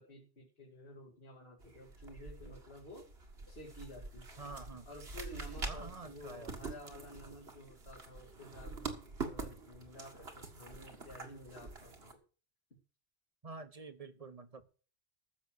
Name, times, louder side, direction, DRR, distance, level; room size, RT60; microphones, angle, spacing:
voice 1, 0.0-3.1 3.5-4.5 4.9-12.2, left 1 dB, 70° left, -3 dB, 2.5 m, -52 dB
sound 1, 1.6-12.1, right 3 dB, 70° right, 2.1 m, -46 dB
voice 2, 4.4-4.9 5.6-6.5 13.4-14.6, right 3 dB, 35° right, 11 dB, 1.1 m, -48 dB
14.5 x 6.3 x 6.4 m, 0.38 s
omnidirectional pair, 1.1 m